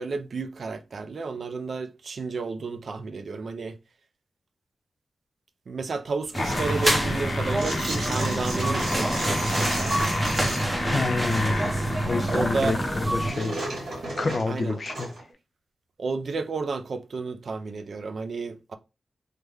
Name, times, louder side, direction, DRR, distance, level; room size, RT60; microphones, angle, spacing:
voice 1, 0.0-3.8 5.7-10.0 11.4-11.7 12.1-12.8 14.5-14.8 16.0-18.8, right 4 dB, 55° right, 0.4 m, -32 dB
sound 1, 6.2-13.2 14.0-14.1, left 2 dB, 80° left, 0.9 m, -32 dB
sound 2, 6.3-13.3, right 1 dB, 15° right, 0.6 m, -27 dB
sound 3, 7.6-10.8 11.1-12.5 12.8-15.3, right 2 dB, 80° right, 1.5 m, -34 dB
voice 2, 10.9-11.7 12.0-13.6 14.2-15.1, left 3 dB, 45° left, 0.4 m, -28 dB
3.2 x 2.1 x 3.4 m
wide cardioid pair, 115°, 0 cm